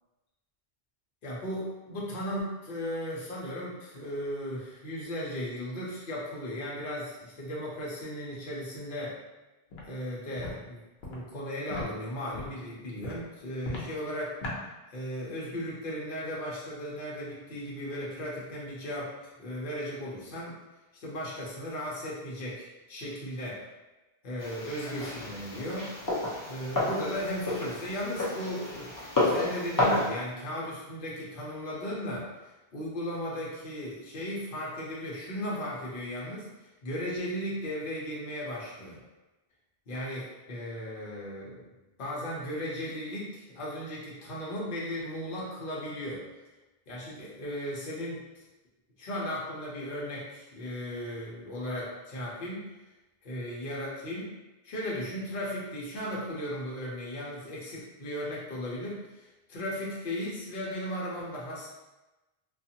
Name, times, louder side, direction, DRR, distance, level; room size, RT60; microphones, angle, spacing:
voice 1, 1.2-9.2 9.8-10.8 11.1-14.4 14.9-19.1 19.4-20.5 20.9-23.6 24.2-25.9 26.5-28.9 29.2-32.3 32.7-36.5 36.8-39.0 39.9-41.6 42.0-46.2 46.9-48.2 49.0-52.6 53.2-54.3 54.6-61.7, equal, 60° left, -5 dB, 0.9 m, -36 dB
Walk footsteps, 9.7-9.9 10.3-10.5 11.0-11.2 11.7-11.8 12.3-12.6 13.0-13.2 13.6-13.9 14.4-14.6, left 1 dB, 85° left, 0.9 m, -37 dB
sound 1, 24.4-30.1, left 2 dB, 25° left, 0.6 m, -31 dB
2.5 x 2.4 x 2.8 m, 1.1 s
omnidirectional pair, 1.0 m